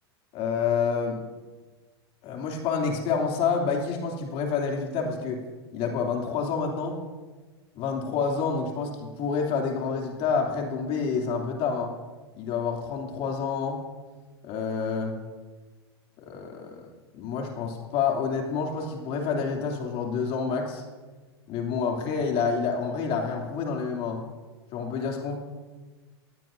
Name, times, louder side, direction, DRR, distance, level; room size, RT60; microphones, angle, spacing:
voice 1, 0.3-1.2 2.2-5.4 5.7-7.0 7.7-11.9 12.3-13.8 14.4-15.1 16.2-16.9 17.1-20.8 21.5-24.2 24.7-25.4, left 5 dB, 45° left, 1 dB, 2.9 m, -28 dB
19.5 x 16.0 x 2.7 m, 1.3 s
hypercardioid pair, 105°, 14 cm